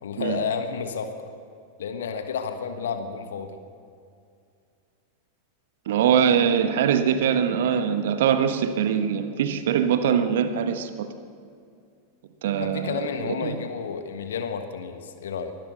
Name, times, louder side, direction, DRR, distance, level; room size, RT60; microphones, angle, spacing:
voice 1, 0.0-1.3 1.8-3.6 12.6-15.5, left 6 dB, 60° left, 8 dB, 1.5 m, -31 dB
voice 2, 5.9-11.1 12.4-13.0 13.4-13.5, right 8 dB, 55° right, 9 dB, 1.3 m, -22 dB
23.5 x 17.0 x 6.5 m, 2.4 s
figure-of-eight pair, 90°, 0 cm